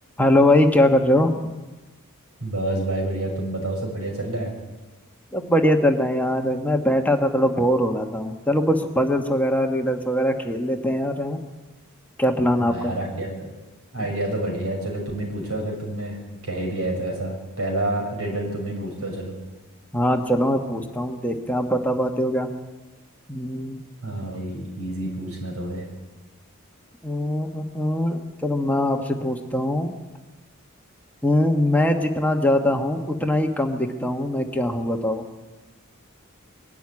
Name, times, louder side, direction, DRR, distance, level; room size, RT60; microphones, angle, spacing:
voice 1, 0.2-1.3 5.3-11.4 12.2-12.9 14.0-14.1 19.9-22.5 23.3-23.8 27.0-29.9 31.2-35.2, left 1 dB, 5° left, 4 dB, 1.3 m, -22 dB
voice 2, 2.4-4.5 12.6-13.5 13.9-16.2 16.4-19.3 24.0-25.9, right 1 dB, 85° right, 1 dB, 6.7 m, -28 dB
21.5 x 12.5 x 9.7 m, 1.2 s
head